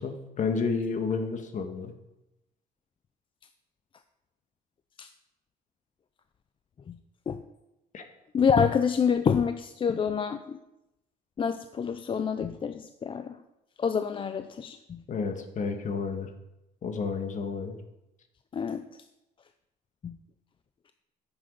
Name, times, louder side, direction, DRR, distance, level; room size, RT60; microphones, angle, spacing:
voice 1, 0.0-1.9 7.9-8.0 15.1-16.3 16.8-17.8, left 5 dB, 50° left, 6 dB, 1.5 m, -31 dB
voice 2, 8.3-10.6 11.4-13.4 13.8-15.0 18.5-18.8 20.0-20.1, left 6 dB, 30° left, 10 dB, 0.5 m, -27 dB
10.0 x 7.9 x 5.4 m, 0.93 s
cardioid pair, 110°, 17 cm